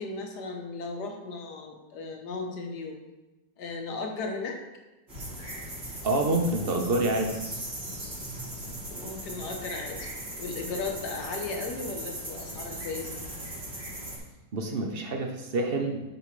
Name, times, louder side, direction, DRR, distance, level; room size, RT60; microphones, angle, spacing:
voice 1, 0.0-3.0 3.6-4.6 9.0-10.1 10.4-13.2, left 3 dB, 65° left, 3 dB, 1.6 m, -36 dB
sound 1, 5.1-14.2, right 1 dB, 35° right, 2.8 m, -38 dB
voice 2, 6.0-7.3 14.5-16.0, right 2 dB, 50° right, 3 dB, 0.7 m, -27 dB
9.0 x 5.6 x 3.2 m, 1.0 s
omnidirectional pair, 2.0 m